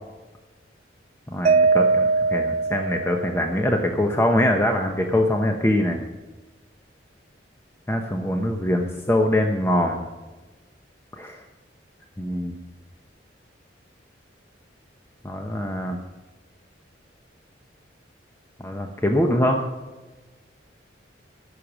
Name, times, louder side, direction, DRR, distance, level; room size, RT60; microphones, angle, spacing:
voice 1, 1.3-6.0 7.9-10.0 11.2-11.4 12.2-12.5 15.2-16.0 18.6-19.7, left 1 dB, 15° left, 2 dB, 0.8 m, -23 dB
Mallet percussion, 1.4-3.7, right 4 dB, 30° right, 0.3 m, -21 dB
16.5 x 6.6 x 7.3 m, 1.2 s
head